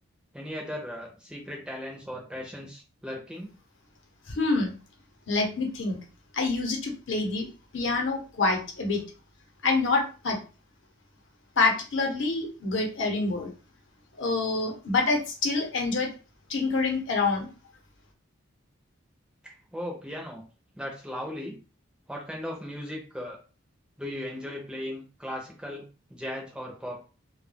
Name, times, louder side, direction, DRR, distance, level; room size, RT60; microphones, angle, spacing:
voice 1, 0.3-3.5 19.4-20.4 20.7-21.6 22.1-23.4 24.0-27.0, left 1 dB, 5° right, -1 dB, 0.4 m, -37 dB
voice 2, 4.3-4.7 5.3-6.0 6.3-7.5 7.7-9.0 9.6-10.4 11.6-13.5 14.2-16.1 16.5-17.5, left 3 dB, 65° left, 2 dB, 0.8 m, -26 dB
2.2 x 2.1 x 3.3 m, 0.35 s
head